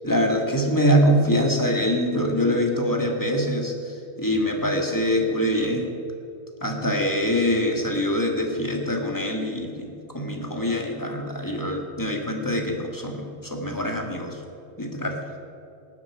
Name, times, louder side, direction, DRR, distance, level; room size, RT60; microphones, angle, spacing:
voice 1, 0.0-5.9 6.6-14.4 14.8-15.2, equal, 15° left, 2 dB, 1.7 m, -24 dB
18.5 x 13.0 x 4.7 m, 2.6 s
omnidirectional pair, 1.5 m